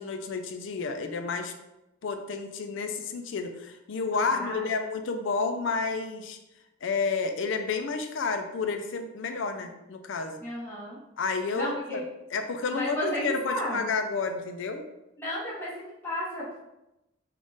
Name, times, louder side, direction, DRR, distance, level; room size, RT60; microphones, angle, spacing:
voice 1, 0.0-1.5 2.0-6.4 6.8-10.4 11.2-12.0 12.3-14.9, left 4 dB, 65° left, 7 dB, 0.4 m, -30 dB
voice 2, 4.1-4.6 9.6-9.7 10.4-11.0 11.5-12.0 12.7-13.9 15.2-16.6, equal, 10° left, -8 dB, 0.9 m, -34 dB
3.6 x 2.4 x 3.8 m, 0.93 s
head